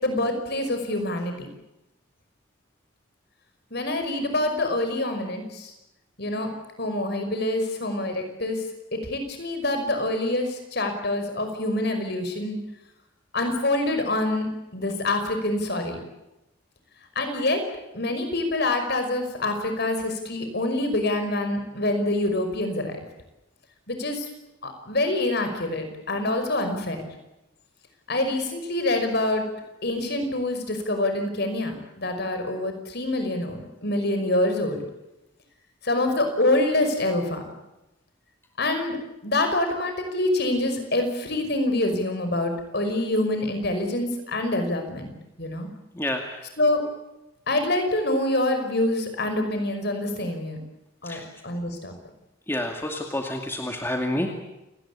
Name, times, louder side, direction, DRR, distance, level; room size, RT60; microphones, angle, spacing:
voice 1, 0.0-1.5 3.7-5.7 6.2-6.5 6.8-8.6 8.9-12.6 13.3-16.0 17.2-17.6 17.9-22.9 23.9-24.3 24.6-27.0 28.1-29.4 29.8-34.8 35.8-37.4 38.6-39.0 39.2-45.1 45.4-45.7 46.6-46.8 47.5-50.6 51.0-51.9, left 2 dB, 50° left, 6 dB, 5.6 m, -26 dB
voice 2, 45.9-46.5 51.0-51.2 52.5-54.3, left 1 dB, 10° left, 3 dB, 2.3 m, -29 dB
29.5 x 19.0 x 8.5 m, 0.95 s
head